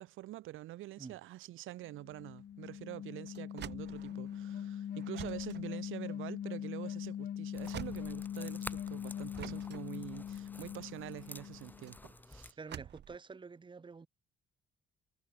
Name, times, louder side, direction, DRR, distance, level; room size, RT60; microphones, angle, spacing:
voice 1, 0.0-12.0 12.3-12.6, right 16 dB, 85° right, 1.3 m, -46 dB
sound 1, 1.8-12.0, left 9 dB, 50° left, 0.7 m, -42 dB
sound 2, 2.1-8.8 9.3-13.2, right 10 dB, 60° right, 1.1 m, -49 dB
sound 3, 7.5-12.5, left 2 dB, 10° left, 0.8 m, -51 dB
voice 2, 12.6-14.1, right 4 dB, 25° right, 1.1 m, -48 dB
cardioid pair, 90°, 20 cm